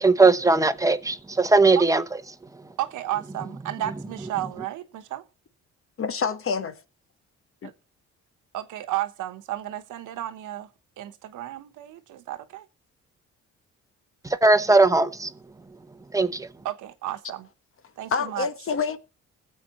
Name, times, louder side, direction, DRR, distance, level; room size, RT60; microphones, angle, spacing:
voice 1, 0.0-2.0 14.4-15.3 16.1-16.5, right 3 dB, 10° right, 0.9 m, -19 dB
voice 2, 2.8-5.2 7.6-7.7 8.5-10.7 11.0-12.6 16.6-17.5 18.0-18.5, right 13 dB, 85° right, 1.2 m, -33 dB
voice 3, 6.0-6.7 7.6-7.7 18.1-19.0, left 5 dB, 45° left, 1.1 m, -27 dB
21.0 x 7.6 x 3.1 m
cardioid pair, 90°, 30 cm